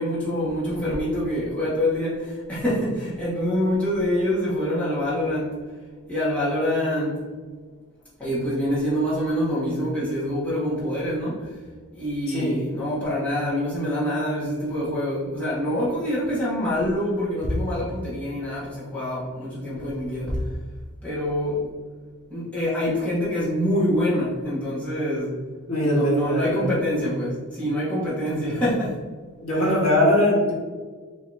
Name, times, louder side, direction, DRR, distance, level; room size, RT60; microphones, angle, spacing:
voice 1, 0.0-5.6 6.1-7.3 8.2-11.6 11.9-20.5 21.0-21.7 22.3-25.4 25.8-29.0 29.5-29.8, equal, 5° left, -10 dB, 1.4 m, -25 dB
voice 2, 12.3-12.7 25.7-26.7 29.4-30.5, left 1 dB, 85° left, -5 dB, 1.5 m, -21 dB
5.4 x 2.9 x 2.7 m, 1.5 s
head